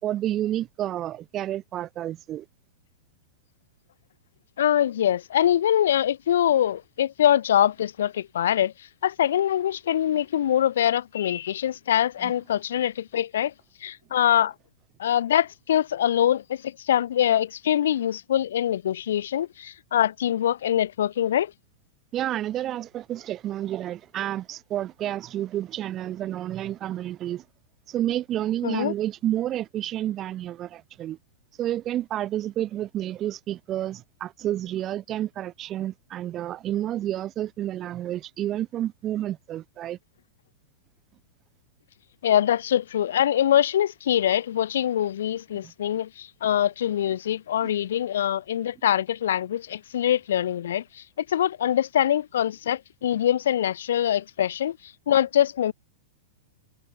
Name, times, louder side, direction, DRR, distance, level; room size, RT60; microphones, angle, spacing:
voice 1, 0.0-2.4 12.2-12.3 22.1-27.4 27.9-31.2 31.6-40.0 45.6-45.7 47.6-47.7, right 12 dB, 25° right, 1.3 m, -30 dB
voice 2, 4.6-8.7 9.0-13.5 13.8-14.5 15.0-16.6 16.9-21.5 28.6-28.9 42.2-50.8 51.3-54.8 55.1-55.7, left 10 dB, 80° left, 1.3 m, -23 dB
supercardioid pair, 150°, 0 cm